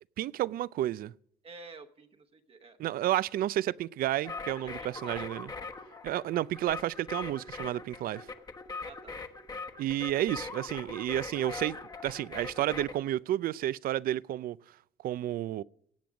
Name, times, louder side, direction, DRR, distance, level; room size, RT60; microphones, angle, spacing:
voice 1, 0.2-1.1 2.8-5.5 6.0-8.3 9.8-11.8 12.0-14.6 15.0-15.6, right 13 dB, 60° right, 0.4 m, -31 dB
voice 2, 1.4-2.8 4.6-5.3 8.8-9.2, right 4 dB, 35° right, 1.1 m, -50 dB
sound 1, 4.2-13.0, left 3 dB, 25° left, 1.1 m, -41 dB
17.5 x 7.7 x 6.3 m
cardioid pair, 110°, 17 cm